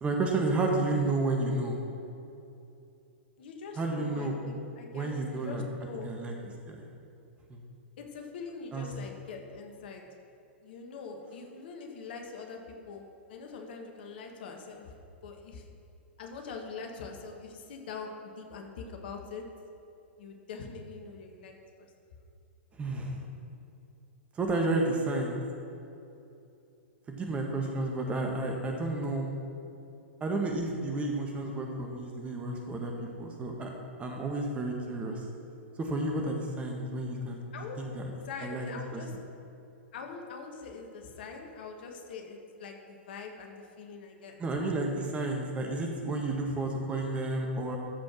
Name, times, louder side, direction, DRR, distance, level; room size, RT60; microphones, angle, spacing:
voice 1, 0.0-1.8 3.8-4.3 4.9-5.6 6.0-6.3 6.7-6.9 7.5-7.6 8.7-8.8 22.8-23.2 24.4-25.4 27.1-29.3 30.2-33.7 34.0-35.2 35.8-37.4 37.8-38.1 38.4-38.7 38.9-39.0 44.4-47.8, right 2 dB, 20° right, 1 dB, 1.6 m, -31 dB
voice 2, 3.4-6.1 8.0-10.0 10.6-13.0 13.3-14.9 15.2-15.6 16.2-19.5 20.2-21.9 37.5-37.8 38.2-39.1 39.9-44.4, left 4 dB, 55° left, 2 dB, 1.6 m, -43 dB
13.5 x 5.1 x 6.2 m, 2.7 s
figure-of-eight pair, 105°, 6 cm